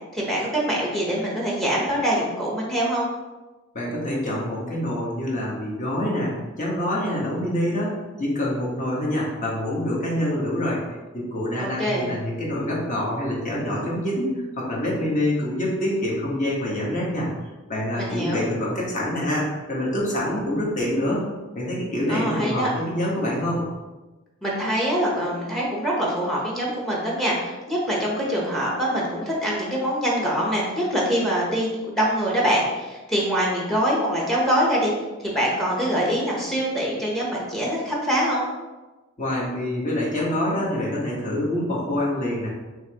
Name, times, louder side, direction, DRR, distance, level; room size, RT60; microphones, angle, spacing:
voice 1, 0.1-3.1 11.6-12.1 18.0-18.5 22.1-22.7 24.4-34.9 35.2-38.5, equal, ahead, -3 dB, 0.8 m, -24 dB
voice 2, 3.7-17.3 17.7-21.3 21.5-23.6 39.2-42.5, left 1 dB, 35° left, -4 dB, 1.3 m, -26 dB
5.5 x 3.1 x 2.9 m, 1.2 s
head